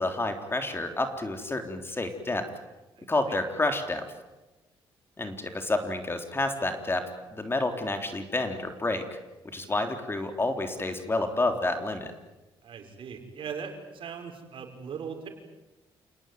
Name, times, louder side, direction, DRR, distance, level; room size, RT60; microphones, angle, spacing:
voice 1, 0.0-2.5 3.1-4.0 5.2-7.0 7.3-9.2 9.4-12.1, left 2 dB, 25° left, 6 dB, 3.6 m, -29 dB
voice 2, 12.6-15.3, right 6 dB, 65° right, 4 dB, 5.8 m, -39 dB
28.5 x 18.5 x 9.5 m, 1.1 s
cardioid pair, 75°, 10 cm